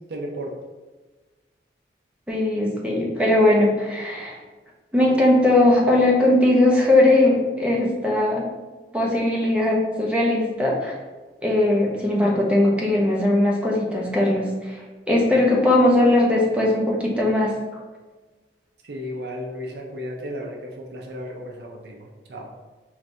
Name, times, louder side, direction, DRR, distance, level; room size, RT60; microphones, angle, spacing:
voice 1, 0.1-0.5 18.8-22.5, equal, 65° right, 0 dB, 0.5 m, -34 dB
voice 2, 2.3-4.4 4.9-8.5 8.9-11.0 11.4-14.8 15.1-17.5, left 1 dB, 5° right, -3 dB, 0.6 m, -19 dB
4.8 x 3.2 x 2.6 m, 1.3 s
head